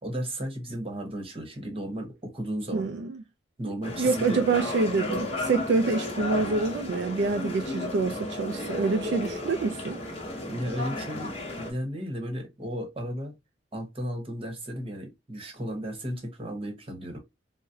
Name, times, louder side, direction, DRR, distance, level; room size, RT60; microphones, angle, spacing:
voice 1, 0.0-2.9 3.6-4.4 10.5-13.3 13.7-17.2, equal, 30° right, 1.0 m, -34 dB
voice 2, 2.7-3.2 4.0-10.0, right 4 dB, 70° right, 0.3 m, -26 dB
sound 1, 3.8-11.7, left 2 dB, 30° left, 0.9 m, -33 dB
3.9 x 2.1 x 2.6 m
head